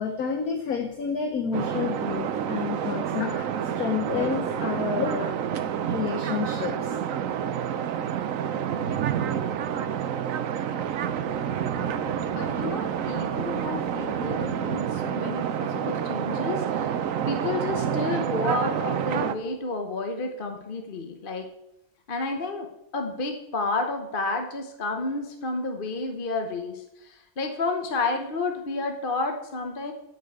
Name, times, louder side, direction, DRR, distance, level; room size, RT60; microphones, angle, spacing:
voice 1, 0.0-3.5 3.8-5.3 5.8-7.0, left 6 dB, 55° left, 5 dB, 1.3 m, -29 dB
sound 1, 1.5-19.3, right 9 dB, 60° right, 0.9 m, -28 dB
sound 2, 10.6-15.6, left 10 dB, 90° left, 1.7 m, -46 dB
voice 2, 12.3-21.5 22.1-22.7 22.9-29.9, left 3 dB, 35° left, 4 dB, 0.9 m, -31 dB
10.5 x 5.5 x 8.0 m, 0.85 s
omnidirectional pair, 2.1 m